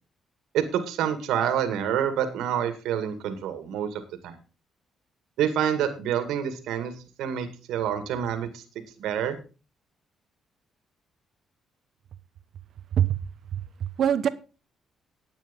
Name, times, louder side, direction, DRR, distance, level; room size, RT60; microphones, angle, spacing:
voice 1, 0.5-4.4 5.4-6.9 7.2-8.6 9.0-9.4, right 9 dB, 85° right, 8 dB, 2.2 m, -27 dB
voice 2, 13.5-14.3, right 9 dB, 65° right, 14 dB, 1.0 m, -24 dB
10.5 x 8.8 x 5.4 m, 0.33 s
cardioid pair, 90°, 0 cm